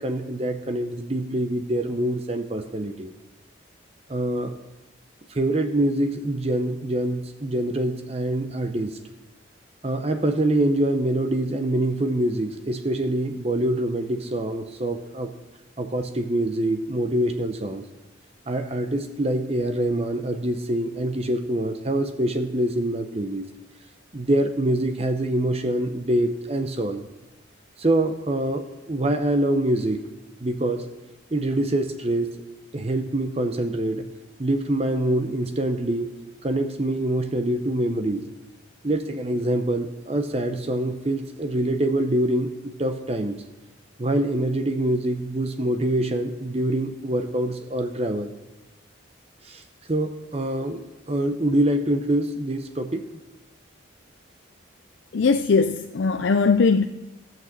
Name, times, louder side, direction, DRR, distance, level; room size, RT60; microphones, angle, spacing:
voice 1, 0.0-3.1 4.1-4.5 5.3-9.0 9.8-15.3 15.8-17.8 18.5-23.5 24.1-27.0 27.8-30.0 30.4-30.9 31.3-32.3 32.7-34.0 34.4-36.1 36.4-38.3 38.8-42.5 42.8-43.4 44.0-48.3 49.4-49.6 49.9-53.0, right 1 dB, 30° right, 7 dB, 0.7 m, -25 dB
voice 2, 55.1-56.9, left 4 dB, 65° left, 8 dB, 0.4 m, -20 dB
14.5 x 6.0 x 7.3 m, 1.0 s
head